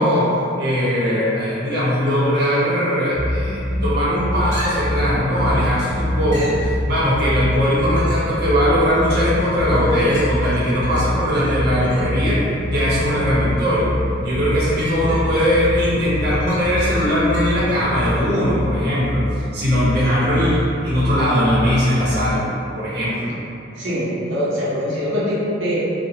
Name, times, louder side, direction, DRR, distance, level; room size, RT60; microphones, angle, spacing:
voice 1, 0.0-12.4 12.7-13.9 14.2-19.2 19.5-22.5 22.7-23.3, equal, 55° right, -9 dB, 0.7 m, -20 dB
sound 1, 3.1-22.3, left 1 dB, 5° right, 0.4 m, -26 dB
sound 2, 3.3-18.3, equal, 80° left, 0.6 m, -31 dB
sound 3, 4.5-5.1 6.3-6.7 7.6-8.4 9.0-9.1 10.1-13.1 14.4-15.7 16.1-17.8 21.5-21.6, equal, 30° left, 1.3 m, -36 dB
voice 2, 23.8-25.9, equal, 90° right, -9 dB, 0.7 m, -23 dB
2.9 x 2.1 x 2.7 m, 2.7 s
head